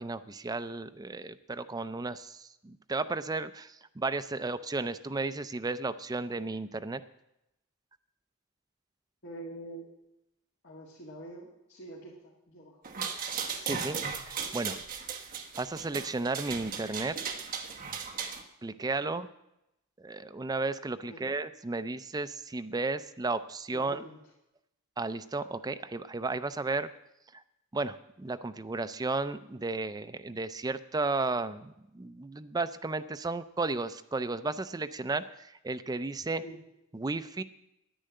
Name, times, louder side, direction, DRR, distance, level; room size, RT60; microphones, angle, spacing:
voice 1, 0.0-7.0 13.6-14.8 15.5-17.2 18.6-19.3 20.0-24.0 25.0-26.9 27.3-27.4 27.7-36.4 36.9-37.4, right 3 dB, 20° right, 12 dB, 0.4 m, -34 dB
voice 2, 9.2-9.9 10.6-12.8 19.0-19.1 21.1-21.2 23.7-24.2 36.4-36.6, right 1 dB, 55° left, -4 dB, 2.3 m, -46 dB
sound 1, 12.8-18.4, right 6 dB, 40° right, 1.2 m, -36 dB
10.0 x 10.0 x 7.6 m, 0.86 s
head